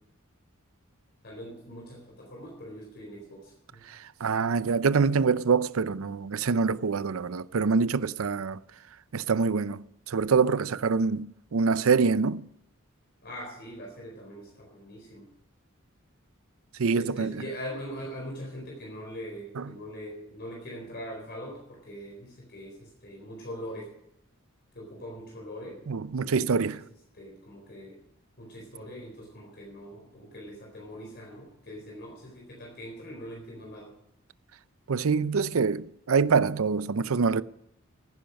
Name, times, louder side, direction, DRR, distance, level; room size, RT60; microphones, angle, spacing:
voice 1, 1.2-3.8 13.2-15.3 16.9-23.9 24.7-25.8 26.3-26.8 27.1-28.0 28.4-33.9, equal, 50° left, 4.1 m, -42 dB
voice 2, 4.2-8.6 9.1-12.4 16.8-17.3 19.6-19.7 25.9-26.8 34.9-37.4, right 5 dB, 90° right, 0.6 m, -25 dB
15.5 x 10.5 x 5.3 m
head